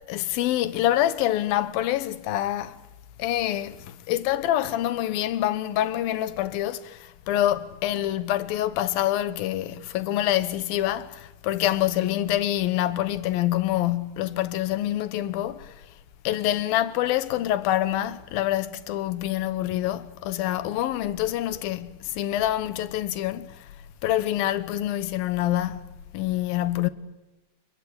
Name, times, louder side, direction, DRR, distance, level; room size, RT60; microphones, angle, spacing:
voice 1, 0.1-2.8 3.2-15.8 16.2-23.7 24.0-26.9, left 13 dB, 85° left, 2.9 m, -26 dB
28.5 x 21.5 x 8.6 m
omnidirectional pair, 4.1 m